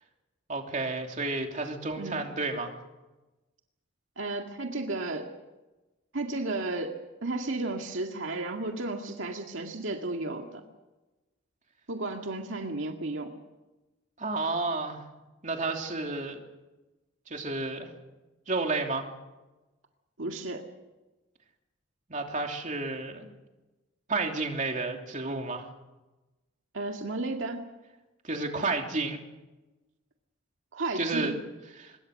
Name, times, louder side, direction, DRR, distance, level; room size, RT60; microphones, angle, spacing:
voice 1, 0.5-2.7 14.2-15.0 15.4-16.4 17.3-17.9 18.5-19.1 22.1-23.3 24.1-25.7 28.2-29.2 30.9-31.3 31.7-32.0, right 3 dB, 40° right, 3 dB, 3.0 m, -31 dB
voice 2, 4.2-5.3 6.1-10.6 11.9-13.3 20.2-20.6 26.7-27.6 30.7-31.4, right 2 dB, 70° right, 3 dB, 2.0 m, -33 dB
25.0 x 21.5 x 6.6 m, 1.1 s
head